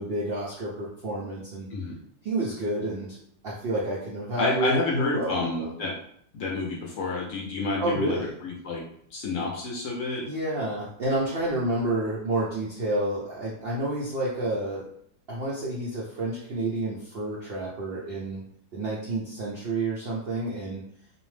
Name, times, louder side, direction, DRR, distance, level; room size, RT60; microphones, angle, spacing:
voice 1, 0.0-1.7 2.2-3.2 3.4-5.8 7.8-8.3 10.2-14.8 15.3-18.4 18.7-20.8, right 1 dB, 75° right, -5 dB, 0.5 m, -29 dB
voice 2, 4.4-5.9 6.3-8.8 9.1-10.3, left 3 dB, 65° left, -2 dB, 0.8 m, -29 dB
2.6 x 2.0 x 3.1 m, 0.66 s
omnidirectional pair, 1.7 m